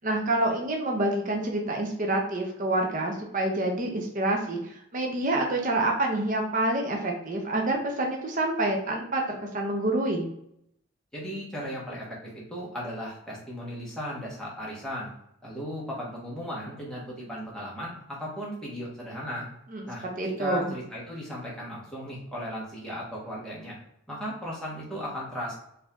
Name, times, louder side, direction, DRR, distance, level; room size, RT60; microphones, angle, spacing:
voice 1, 0.0-10.3 19.7-20.7, right 1 dB, 35° right, 1 dB, 0.6 m, -27 dB
voice 2, 11.1-12.1 12.3-15.1 15.4-19.5 19.9-20.1 20.4-23.8 24.1-25.5, equal, 5° left, -6 dB, 1.2 m, -36 dB
4.3 x 2.7 x 3.4 m, 0.75 s
head